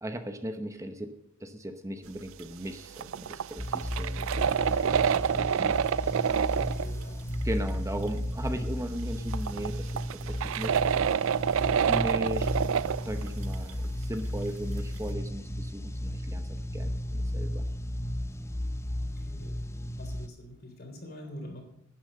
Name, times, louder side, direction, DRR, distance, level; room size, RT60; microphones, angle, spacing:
voice 1, 0.0-1.1 1.4-5.8 7.4-10.0 10.3-10.8 11.9-12.6 13.0-17.7, right 1 dB, 15° right, 7 dB, 0.9 m, -37 dB
sound 1, 3.0-6.9 7.3-7.4 7.7-7.8 9.3-13.7 14.1-14.2, right 7 dB, 75° right, 0.4 m, -27 dB
sound 2, 3.6-20.3, equal, 15° left, 0.7 m, -34 dB
voice 2, 6.3-7.2 19.2-19.5 19.9-21.6, left 1 dB, 50° left, 3 dB, 3.7 m, -45 dB
11.5 x 10.0 x 6.7 m, 0.77 s
head